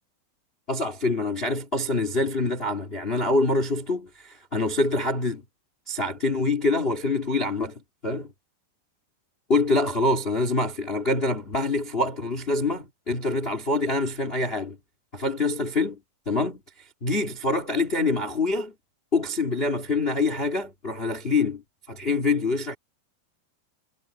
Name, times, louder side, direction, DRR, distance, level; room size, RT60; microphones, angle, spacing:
voice 1, 0.7-5.4 5.9-8.3 9.5-14.8 15.1-16.0 16.2-16.6 17.0-18.7 19.1-21.6 21.9-22.7, left 2 dB, 55° left, 0.6 m, -25 dB
omnidirectional pair, 5.2 m